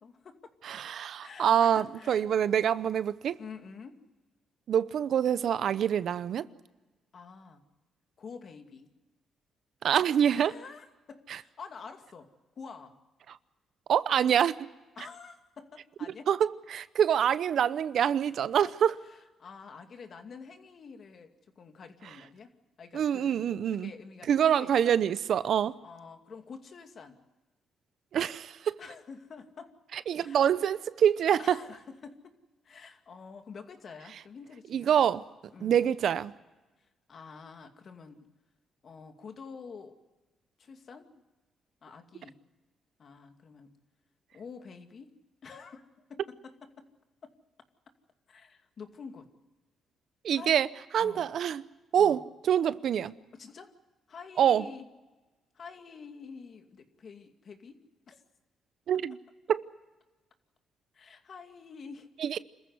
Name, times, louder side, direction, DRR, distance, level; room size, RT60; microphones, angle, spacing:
voice 1, 0.0-0.5 1.2-2.3 3.4-4.0 7.1-7.6 8.2-8.9 10.4-12.3 12.6-13.0 15.0-16.3 18.6-18.7 19.4-22.5 22.8-24.9 25.8-27.2 28.8-29.7 30.1-30.4 31.4-32.3 32.6-34.9 35.5-35.8 37.1-38.3 38.8-39.9 40.6-41.2 41.8-42.4 43.0-43.7 44.3-45.1 45.4-46.9 47.2-47.3 48.3-49.3 50.3-50.7 51.0-51.3 52.0-52.2 53.3-53.7 54.1-54.8 55.5-58.2 60.9-62.1, left 5 dB, 50° left, 2.4 m, -48 dB
voice 2, 0.6-3.4 4.7-6.5 9.8-10.5 11.3-11.4 13.3-13.4 13.9-14.6 16.3-18.9 22.9-23.9 24.3-25.7 28.1-28.7 29.9-31.6 34.7-35.2 35.6-36.3 50.2-50.7 50.9-51.6 51.9-53.1 54.4-54.7 58.9-59.2 59.5-59.6 62.2-62.4, right 9 dB, 65° right, 0.7 m, -26 dB
27.0 x 14.5 x 9.6 m
cardioid pair, 90°, 0 cm